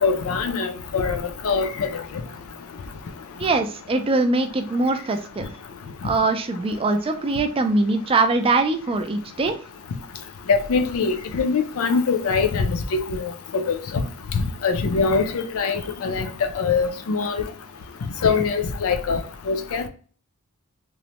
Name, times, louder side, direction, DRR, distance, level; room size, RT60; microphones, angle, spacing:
voice 1, 0.0-2.0 10.5-14.0 14.3-16.3 16.6-17.4 18.2-19.2 19.5-19.8, left 5 dB, 65° left, 0.4 m, -23 dB
voice 2, 3.4-5.5 6.0-9.6, right 3 dB, 25° right, 0.3 m, -22 dB
3.0 x 2.1 x 2.8 m
head